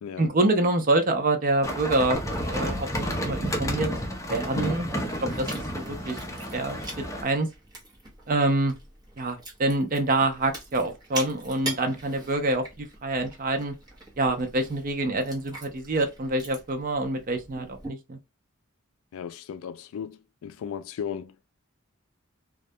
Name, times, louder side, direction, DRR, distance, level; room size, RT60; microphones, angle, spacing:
voice 1, 0.2-3.9 4.3-4.9 5.4-5.5 5.7-6.2 6.5-6.8 7.2-7.5 8.3-8.7 9.2-13.7 14.2-18.2, right 2 dB, 40° right, 0.5 m, -26 dB
sound 1, 1.6-7.2, equal, 15° left, 0.5 m, -31 dB
Chewing mastication, 2.1-17.9, right 2 dB, 20° right, 0.8 m, -43 dB
voice 2, 19.1-21.5, left 8 dB, 80° left, 0.3 m, -36 dB
2.3 x 2.1 x 2.6 m
head